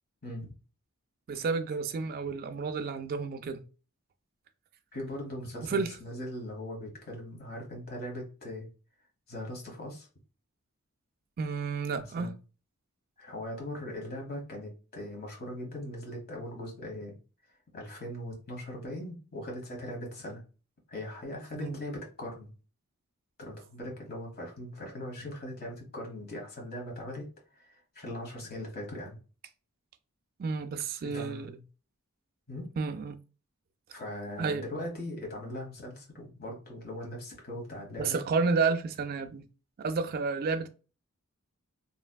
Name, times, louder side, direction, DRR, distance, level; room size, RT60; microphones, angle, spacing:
voice 1, 0.2-0.5 4.9-8.7 9.3-10.1 12.2-12.3 13.2-17.2 17.7-20.4 20.9-22.5 23.4-27.3 27.5-29.2 31.0-31.6 32.5-32.7 33.9-38.2, left 1 dB, 45° left, 1.3 m, -40 dB
voice 2, 1.3-3.6 5.6-5.9 11.4-12.3 21.6-21.8 30.4-31.5 32.8-33.2 34.4-34.7 38.0-39.5 39.8-40.7, right 4 dB, 45° right, 0.3 m, -31 dB
3.2 x 2.7 x 2.3 m
head